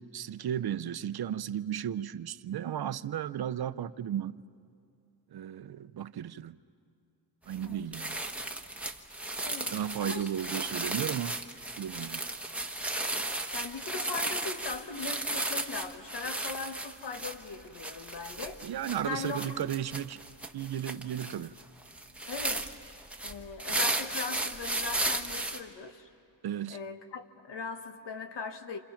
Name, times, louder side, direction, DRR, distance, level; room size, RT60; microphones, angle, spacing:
voice 1, 0.0-4.4 5.3-6.6 7.5-8.2 9.7-11.4 11.8-12.2 18.6-20.2 20.5-21.5 26.4-26.8, right 10 dB, 60° right, 0.7 m, -34 dB
sound 1, 7.5-7.7 7.9-25.6, right 2 dB, 5° right, 1.3 m, -35 dB
voice 2, 9.4-10.3 13.5-18.6 19.0-19.6 22.3-22.7 23.2-26.1 26.7-28.8, left 4 dB, 65° left, 1.6 m, -40 dB
29.0 x 28.5 x 5.8 m
wide cardioid pair, 120°, 44 cm